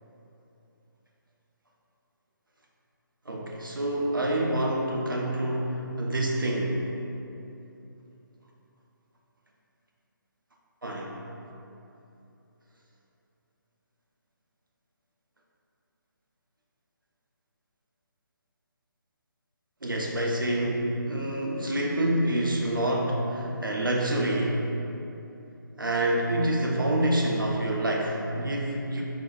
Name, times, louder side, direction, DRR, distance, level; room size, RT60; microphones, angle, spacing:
voice 1, 3.3-6.8 10.8-11.2 19.8-24.7 25.8-29.0, right 1 dB, 75° right, -1 dB, 0.7 m, -27 dB
4.1 x 2.3 x 4.7 m, 2.9 s
figure-of-eight pair, 145°, 11 cm